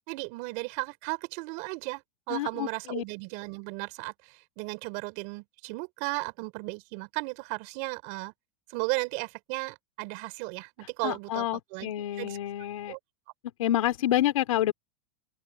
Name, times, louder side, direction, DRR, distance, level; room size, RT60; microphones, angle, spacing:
voice 1, 0.1-8.3 8.7-11.9 12.2-12.4 12.9-13.0, right 29 dB, 55° right, 5.1 m, -35 dB
voice 2, 2.3-3.0 11.0-12.9 13.6-14.7, left 13 dB, 85° left, 3.4 m, -28 dB
open air
supercardioid pair, 140°, 17 cm